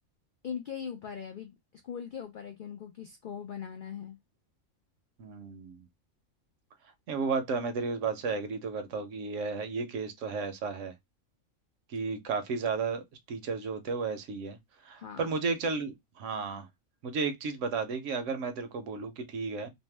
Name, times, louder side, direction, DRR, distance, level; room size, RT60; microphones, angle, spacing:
voice 1, 0.4-1.6 1.8-4.2 15.0-15.3, left 7 dB, 85° left, 0.4 m, -40 dB
voice 2, 5.2-5.8 7.1-10.9 11.9-13.0 13.3-14.6 14.8-16.7 17.0-19.7, right 4 dB, 70° right, 0.9 m, -33 dB
2.7 x 2.1 x 3.1 m
omnidirectional pair, 1.4 m